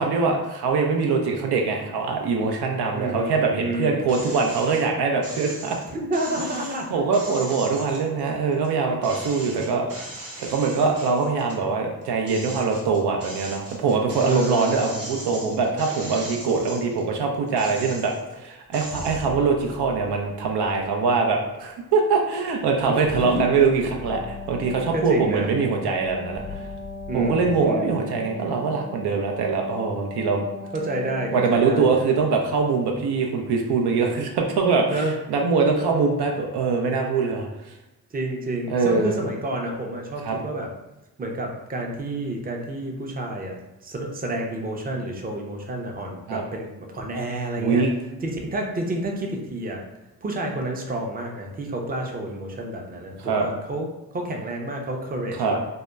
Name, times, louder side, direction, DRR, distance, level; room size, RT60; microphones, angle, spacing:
voice 1, 0.0-5.8 6.9-9.9 10.4-26.6 27.1-30.4 31.3-37.7 38.7-39.2 40.2-40.4 46.3-46.4 47.6-47.9 53.2-53.4 55.4-55.6, right 4 dB, 80° right, 1 dB, 0.5 m, -23 dB
voice 2, 2.9-4.1 5.9-7.0 14.2-14.8 23.1-23.4 24.9-25.5 27.1-27.9 30.7-31.9 34.9-35.1 38.1-40.7 41.2-47.8 48.2-49.8 50.2-53.9 54.1-55.6, right 1 dB, 25° right, 1 dB, 0.5 m, -29 dB
sound 1, 4.1-4.8 5.2-8.7 9.0-11.6 12.0-17.0 17.5-18.3 18.7-19.3, right 1 dB, 40° right, 0.9 m, -39 dB
sound 2, 18.9-21.5 22.3-22.4 22.7-27.6, left 5 dB, 80° left, 0.8 m, -42 dB
Wind instrument woodwind instrument, 23.9-31.9, left 2 dB, 40° left, 0.4 m, -38 dB
2.8 x 2.1 x 2.2 m, 0.97 s
cardioid pair, 50°, 39 cm